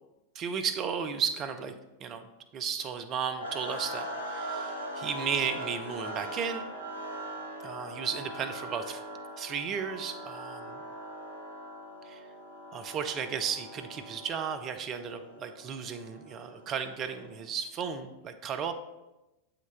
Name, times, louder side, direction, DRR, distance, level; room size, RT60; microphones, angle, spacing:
voice 1, 0.3-1.7 2.0-2.3 2.5-6.7 7.6-9.0 9.4-10.8 12.0-12.3 12.7-18.7, right 7 dB, 30° right, 8 dB, 0.6 m, -34 dB
sound 1, 3.4-17.5, right 1 dB, 75° left, 2.0 m, -41 dB
7.4 x 5.8 x 3.4 m, 1.0 s
figure-of-eight pair, 90°, 0 cm